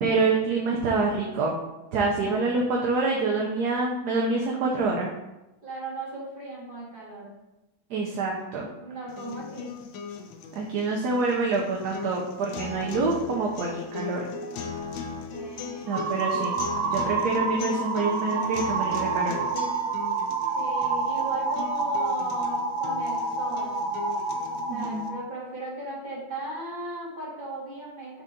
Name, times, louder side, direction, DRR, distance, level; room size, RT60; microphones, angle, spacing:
voice 1, 0.0-1.6 1.9-5.1 7.9-8.7 10.5-14.3 15.8-16.5 16.9-19.4 24.7-25.1, right 3 dB, 65° right, -2 dB, 1.2 m, -26 dB
voice 2, 5.6-7.4 8.8-9.8 15.3-16.1 20.5-23.8 24.7-28.2, right 2 dB, 25° right, -8 dB, 2.4 m, -37 dB
sound 1, 9.1-25.1, left 5 dB, 80° left, 1.4 m, -38 dB
sound 2, 15.9-25.2, right 4 dB, 80° right, 1.7 m, -28 dB
6.8 x 3.9 x 3.7 m, 0.98 s
omnidirectional pair, 2.1 m